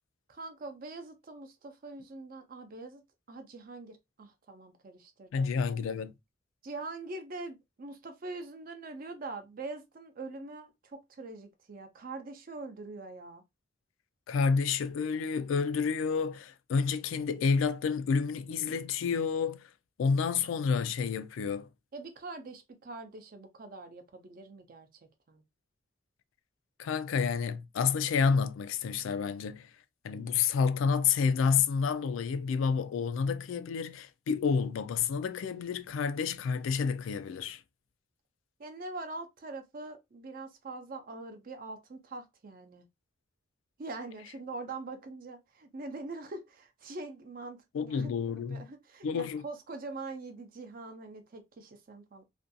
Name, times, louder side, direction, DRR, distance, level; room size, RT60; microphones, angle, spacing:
voice 1, 0.3-3.0 3.3-5.5 6.6-13.4 21.9-24.9 25.3-25.4 38.6-42.8 43.8-48.1 48.5-52.2, right 3 dB, 45° right, 0.5 m, -43 dB
voice 2, 5.3-6.1 14.3-19.6 20.0-21.7 26.8-29.7 30.0-37.6 47.7-48.7 49.0-49.4, left 5 dB, 80° left, 0.3 m, -29 dB
2.5 x 2.2 x 2.5 m
head